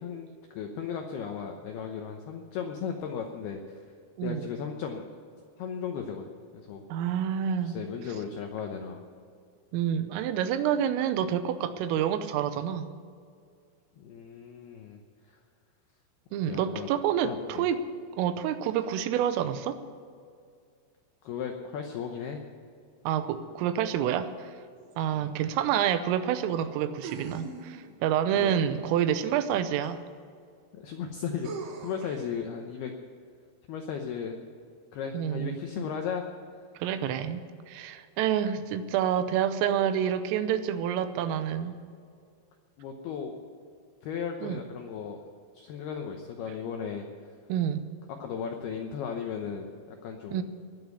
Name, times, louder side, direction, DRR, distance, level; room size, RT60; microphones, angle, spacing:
voice 1, 0.0-3.8 4.2-5.1 5.6-6.8 7.6-9.0 14.0-15.0 15.3-15.4 16.5-16.9 17.2-17.7 21.2-22.4 25.1-25.3 28.3-28.6 30.7-32.9 33.7-34.4 34.9-36.3 42.8-43.4 44.0-45.2 45.5-47.1 48.2-50.4, left 7 dB, 80° left, 3 dB, 2.3 m, -36 dB
voice 2, 4.2-4.5 6.9-7.8 9.7-12.9 16.3-17.8 18.2-19.8 23.0-24.5 25.0-30.0 35.1-35.6 36.8-41.7 44.4-44.6 47.5-47.8 50.3-50.4, right 9 dB, 85° right, 11 dB, 3.4 m, -28 dB
sound 1, 24.9-25.0 27.0-28.0 29.8-29.9 31.4-32.2, right 4 dB, 65° right, 3.2 m, -40 dB
20.5 x 7.2 x 8.1 m, 2.3 s
omnidirectional pair, 5.9 m